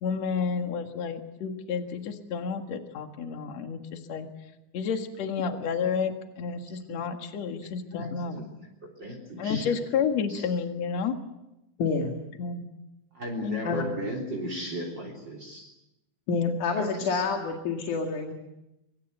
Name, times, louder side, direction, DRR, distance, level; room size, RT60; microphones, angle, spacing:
voice 1, 0.0-4.3 4.7-8.4 9.4-11.1 12.4-12.7 13.4-13.6, left 6 dB, 60° left, 5 dB, 2.9 m, -30 dB
voice 2, 7.6-9.8 10.3-10.5 13.1-15.7 16.7-17.2, equal, 35° right, 3 dB, 4.2 m, -37 dB
voice 3, 11.8-12.1 13.7-13.8 16.3-18.3, left 4 dB, 75° left, 3 dB, 3.7 m, -28 dB
24.5 x 24.0 x 8.0 m, 0.92 s
omnidirectional pair, 3.6 m